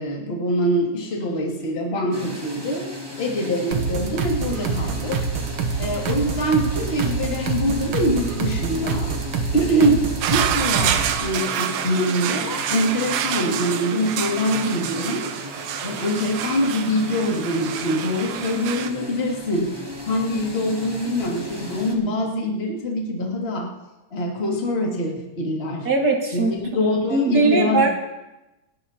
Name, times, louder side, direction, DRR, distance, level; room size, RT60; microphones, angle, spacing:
voice 1, 0.0-5.3 5.8-9.1 9.5-15.3 15.8-19.8 20.0-23.7 24.1-25.9 26.3-27.9, equal, 20° left, -2 dB, 2.1 m, -24 dB
sound 1, 2.1-21.9, left 1 dB, 10° right, 1.6 m, -37 dB
sound 2, 3.7-11.2, right 5 dB, 65° right, 1.7 m, -26 dB
sound 3, 10.2-18.9, right 10 dB, 80° right, 2.2 m, -28 dB
voice 2, 25.8-26.6 27.1-27.9, right 2 dB, 35° right, 0 dB, 2.1 m, -19 dB
29.5 x 10.5 x 2.9 m, 1.0 s
omnidirectional pair, 3.5 m